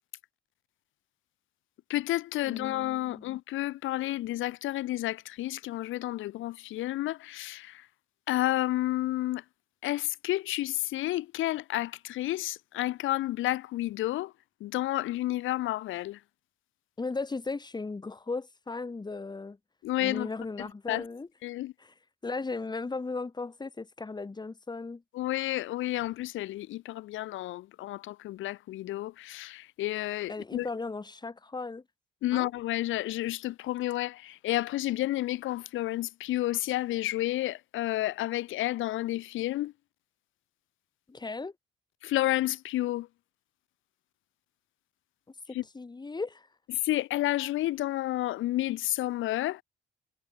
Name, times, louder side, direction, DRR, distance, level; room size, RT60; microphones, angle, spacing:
voice 1, 1.9-7.9 8.3-9.4 9.8-14.3 14.6-16.2 19.8-20.3 20.6-21.0 21.4-21.7 25.1-30.7 32.2-39.7 42.0-43.1 45.5-45.6 46.7-49.6, left 15 dB, 80° left, 0.6 m, -31 dB
voice 2, 2.4-3.3 17.0-19.6 20.0-21.3 21.8-21.9 22.2-25.0 30.3-31.8 32.3-32.5 41.1-41.5 45.7-46.5, left 3 dB, 20° left, 1.6 m, -36 dB
cardioid pair, 90°, 20 cm